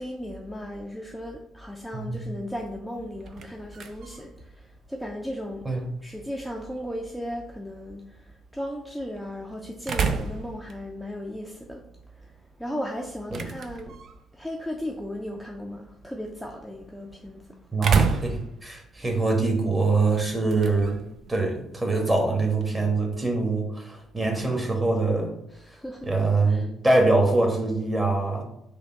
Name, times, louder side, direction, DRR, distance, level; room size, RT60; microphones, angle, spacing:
voice 1, 0.0-5.7 6.0-14.0 14.3-17.6 19.0-19.1 25.5-26.1 26.5-26.7, equal, ahead, 0 dB, 0.5 m, -36 dB
voice 2, 1.9-2.3 5.6-5.9 17.7-21.0 21.3-25.3 26.0-28.4, right 3 dB, 20° right, 1 dB, 1.3 m, -24 dB
sound 1, 3.0-22.8, right 5 dB, 50° right, 0.4 m, -35 dB
3.5 x 2.5 x 4.5 m, 0.78 s
figure-of-eight pair, 45°, 0 cm